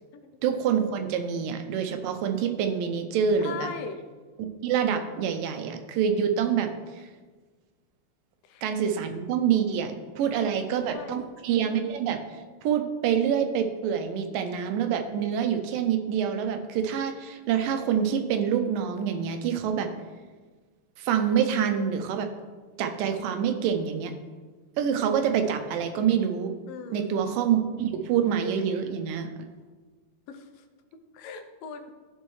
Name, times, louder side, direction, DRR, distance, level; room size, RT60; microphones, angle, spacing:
voice 1, 0.4-3.7 4.4-7.1 8.6-19.9 21.0-22.3 22.8-24.1 24.8-26.5 26.9-29.3, right 8 dB, 80° right, 7 dB, 2.3 m, -26 dB
voice 2, 3.4-4.0 8.4-8.7 10.3-11.2 26.7-27.1 30.3-30.7 31.1-31.9, left 5 dB, 85° left, 6 dB, 2.5 m, -39 dB
14.0 x 5.4 x 3.2 m, 1.4 s
omnidirectional pair, 4.0 m